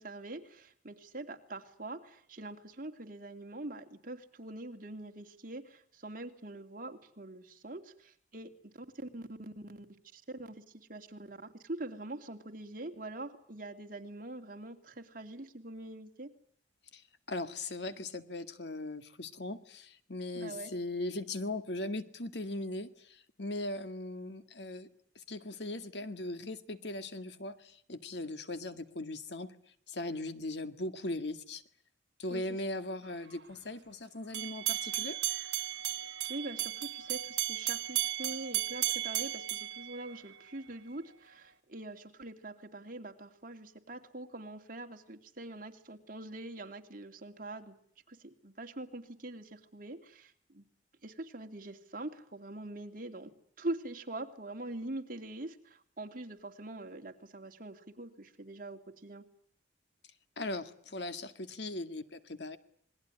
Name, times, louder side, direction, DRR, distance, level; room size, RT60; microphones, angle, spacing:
voice 1, 0.0-9.8 10.1-11.4 11.6-16.3 20.3-20.7 32.3-32.4 36.0-47.7 48.1-50.6 51.0-53.3 53.6-59.2, right 2 dB, 50° right, 5 dB, 2.9 m, -44 dB
voice 2, 16.9-24.9 25.2-29.6 29.9-31.6 32.2-35.2 60.4-62.6, left 2 dB, 70° left, 10 dB, 2.0 m, -39 dB
sound 1, 34.3-40.6, right 15 dB, 80° right, 1.2 m, -35 dB
27.5 x 21.0 x 10.0 m, 0.64 s
head